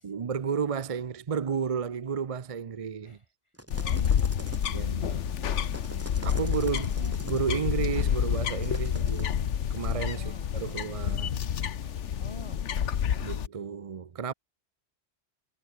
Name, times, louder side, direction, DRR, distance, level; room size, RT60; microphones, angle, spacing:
voice 1, 0.0-3.2 4.7-5.2 5.5-5.6 6.2-11.4 13.2-14.3, right 6 dB, 40° right, 0.6 m, -32 dB
sound 1, 3.5-4.9 5.5-7.6 8.5-9.4 10.7-10.9, right 1 dB, 10° right, 3.8 m, -45 dB
sound 2, 3.7-13.5, left 9 dB, 90° left, 1.3 m, -29 dB
voice 2, 3.7-7.5 8.8-9.3 10.1-11.7 12.2-13.3, left 1 dB, 25° left, 4.2 m, -49 dB
omnidirectional pair, 1.2 m